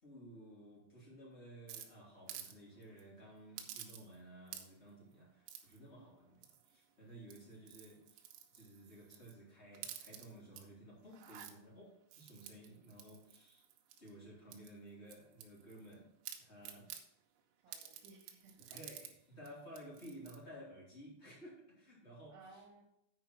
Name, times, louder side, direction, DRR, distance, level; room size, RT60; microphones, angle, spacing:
voice 1, 0.0-8.2 8.5-13.6 14.0-16.9 17.7-17.9 18.6-22.6, right 1 dB, 15° left, -6 dB, 2.5 m, -55 dB
sound 1, 1.7-2.5 2.8-3.0 3.6-4.2 4.5-4.9 5.5-5.8 6.4-6.8 7.2-9.4 9.7-10.6 11.1-11.5 12.1-14.1 14.5-15.9 16.2-17.0 17.7-19.1 19.5-19.6 19.7-20.4, right 10 dB, 90° right, 3.5 m, -51 dB
voice 2, 17.6-18.8 22.3-22.8, right 3 dB, 70° right, -1 dB, 3.9 m, -60 dB
9.6 x 4.9 x 6.1 m, 0.76 s
omnidirectional pair, 5.8 m